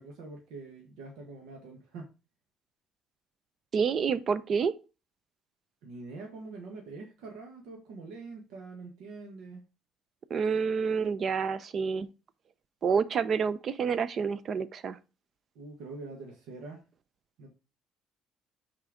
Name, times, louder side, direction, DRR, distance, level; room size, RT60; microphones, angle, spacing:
voice 1, 0.0-2.1 5.8-9.6 15.5-16.8 17.4-17.5, right 3 dB, 90° right, 1.5 m, -44 dB
voice 2, 3.7-4.7 10.3-12.1 12.8-15.0, right 6 dB, 40° right, 0.6 m, -28 dB
6.1 x 4.5 x 5.0 m
cardioid pair, 140°, 0 cm